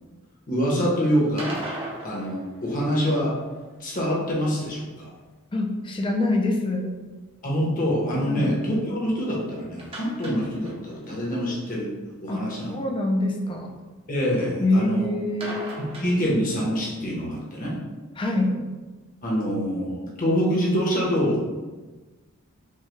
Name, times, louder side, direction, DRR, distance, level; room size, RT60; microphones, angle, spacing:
voice 1, 0.5-1.6 2.0-3.3 3.8-5.1 7.4-11.9 12.2-12.7 14.1-15.1 16.0-17.8 19.2-21.4, equal, 40° left, -4 dB, 1.0 m, -25 dB
sound 1, 1.2-3.4 9.8-11.1 11.3-11.4 11.8-11.9 15.4-16.7, right 1 dB, 25° right, 0.7 m, -37 dB
voice 2, 5.5-7.0 8.2-8.5 12.3-13.8 14.6-15.6 18.2-18.6, left 2 dB, 25° left, 2 dB, 0.4 m, -25 dB
5.5 x 2.3 x 3.2 m, 1.3 s
head